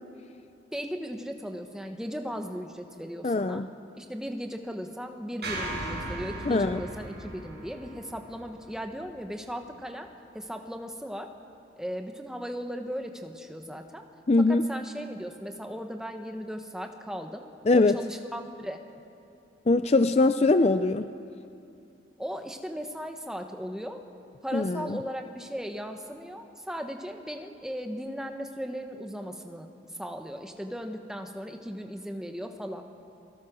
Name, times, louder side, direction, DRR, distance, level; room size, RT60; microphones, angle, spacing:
voice 1, 0.7-3.6 3.9-10.1 10.3-11.3 11.8-14.1 14.4-17.4 17.7-18.8 22.2-24.0 24.4-32.9, equal, 5° right, 4 dB, 1.2 m, -37 dB
voice 2, 3.2-3.7 6.5-6.8 14.3-14.7 17.7-18.0 19.7-21.1 24.5-25.0, left 3 dB, 35° left, 10 dB, 0.5 m, -22 dB
sound 1, 5.4-9.7, right 2 dB, 60° right, 6.9 m, -38 dB
29.0 x 21.0 x 6.3 m, 2.7 s
head